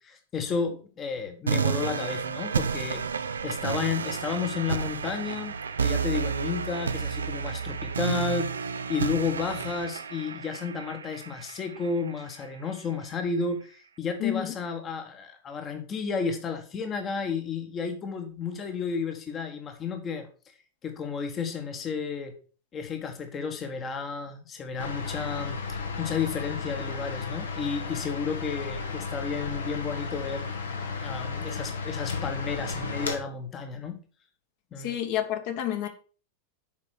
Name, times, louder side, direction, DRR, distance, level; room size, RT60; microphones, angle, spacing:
voice 1, 0.0-5.5 5.8-20.3 20.8-22.3 22.7-30.5 31.0-34.0 34.7-35.0, left 5 dB, 25° left, 5 dB, 1.3 m, -32 dB
sound 1, 1.5-12.4, right 6 dB, 70° right, 0.5 m, -31 dB
voice 2, 14.2-14.5 34.8-35.9, left 11 dB, 50° left, 5 dB, 1.4 m, -29 dB
sound 2, 24.8-33.2, left 4 dB, 70° left, 1.5 m, -34 dB
7.4 x 5.3 x 6.3 m, 0.39 s
figure-of-eight pair, 90°, 0 cm